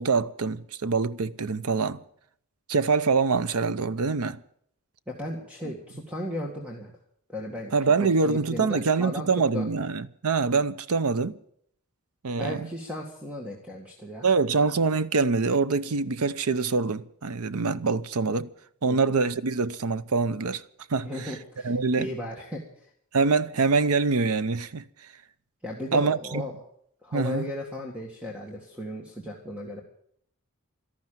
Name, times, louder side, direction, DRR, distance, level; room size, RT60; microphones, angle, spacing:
voice 1, 0.0-2.0 2.7-4.4 7.7-11.4 12.2-12.7 14.2-18.5 18.8-20.6 20.9-21.1 21.6-22.1 23.1-24.8 25.9-26.4 27.1-27.5, right 4 dB, 75° right, 0.7 m, -25 dB
voice 2, 5.1-6.9 7.3-9.3 9.5-9.7 12.4-14.3 18.8-19.1 21.0-21.7 22.0-22.9 25.6-26.5 27.0-29.8, left 1 dB, 5° right, 1.8 m, -36 dB
13.0 x 12.0 x 9.0 m
head